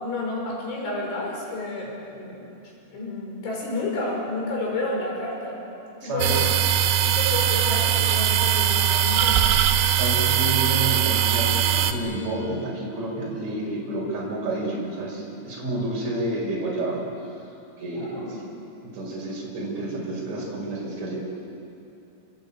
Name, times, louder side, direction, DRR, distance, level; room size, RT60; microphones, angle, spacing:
voice 1, 0.0-2.5 2.9-5.6 6.0-6.5 7.0-9.6 17.9-18.4, left 2 dB, 70° left, -2 dB, 8.2 m, -31 dB
voice 2, 6.0-6.4 9.9-17.5 17.8-18.4 18.8-21.2, right 1 dB, 35° right, -2 dB, 6.6 m, -30 dB
sound 1, 6.2-11.9, right 9 dB, 90° right, 3.9 m, -21 dB
28.0 x 22.5 x 8.8 m, 2.7 s
omnidirectional pair, 5.7 m